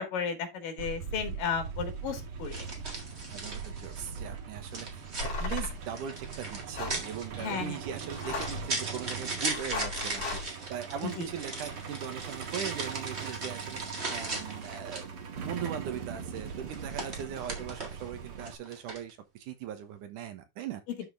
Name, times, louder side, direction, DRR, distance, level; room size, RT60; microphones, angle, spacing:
voice 1, 0.0-2.7 7.4-7.8 11.2-11.3, left 6 dB, 85° left, 3.6 m, -34 dB
Truck, 0.8-18.6, right 6 dB, 55° right, 1.7 m, -41 dB
sound 1, 1.3-1.4 2.5-4.2 4.7-15.2 16.4-18.1 18.4-19.1, right 2 dB, 30° right, 1.2 m, -38 dB
voice 2, 3.1-20.8, right 9 dB, 75° right, 2.6 m, -40 dB
sound 2, 5.2-5.8 6.7-7.0 8.1-8.7 9.5-10.5, left 4 dB, 50° left, 3.8 m, -35 dB
11.5 x 4.4 x 3.4 m
omnidirectional pair, 3.8 m